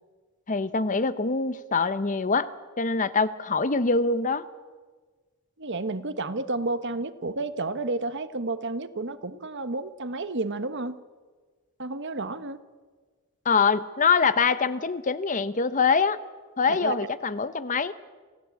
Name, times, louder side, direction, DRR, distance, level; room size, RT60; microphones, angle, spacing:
voice 1, 0.5-2.5 2.8-4.4 13.4-16.2 16.6-17.9, left 4 dB, 35° left, 14 dB, 0.8 m, -24 dB
voice 2, 5.6-11.0 11.8-12.6 16.7-17.0, right 2 dB, 55° right, 11 dB, 1.2 m, -31 dB
27.5 x 16.0 x 8.3 m, 1.4 s
head